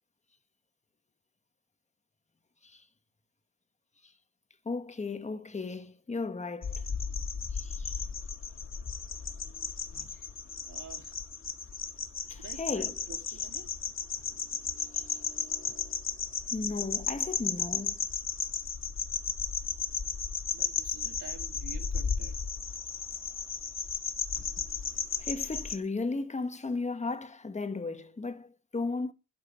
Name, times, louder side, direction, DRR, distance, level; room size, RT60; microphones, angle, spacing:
voice 1, 4.6-6.8 7.5-7.9 9.9-10.1 12.3-13.0 14.9-15.0 16.5-18.0 25.2-29.1, left 3 dB, 20° left, 1.2 m, -35 dB
sound 1, 6.6-25.8, left 5 dB, 35° left, 1.8 m, -34 dB
voice 2, 10.7-11.1 12.4-13.8 20.5-22.4, right 6 dB, 60° right, 2.4 m, -49 dB
13.0 x 7.5 x 9.8 m
wide cardioid pair, 165°, 35 cm